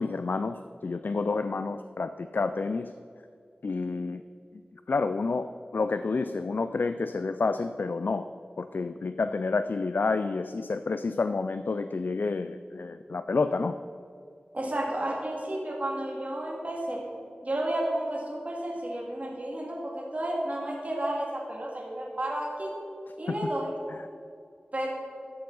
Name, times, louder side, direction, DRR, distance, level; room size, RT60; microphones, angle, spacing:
voice 1, 0.0-2.9 3.6-4.2 4.5-8.3 8.6-13.8 23.3-23.4 23.9-24.1, left 4 dB, 70° left, 10 dB, 0.3 m, -29 dB
voice 2, 14.5-17.0 17.4-22.7 23.1-23.7 24.7-24.9, right 1 dB, 45° right, -3 dB, 2.3 m, -32 dB
12.5 x 6.9 x 4.0 m, 2.4 s
wide cardioid pair, 45°, 3 cm